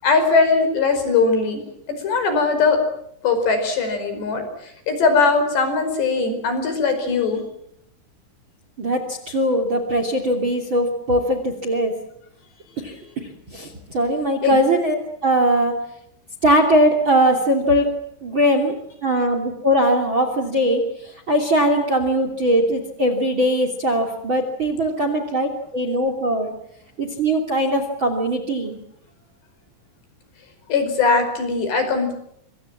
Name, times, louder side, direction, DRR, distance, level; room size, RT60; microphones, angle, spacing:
voice 1, 0.0-1.6 2.0-2.8 3.2-7.4 14.4-14.6 30.7-32.1, left 4 dB, 60° left, 8 dB, 7.0 m, -20 dB
voice 2, 8.8-11.9 12.8-15.7 16.4-17.9 18.2-18.7 19.0-20.8 21.3-26.5 27.0-28.8, equal, 30° right, 8 dB, 2.9 m, -20 dB
26.0 x 25.0 x 7.4 m, 0.74 s
omnidirectional pair, 5.6 m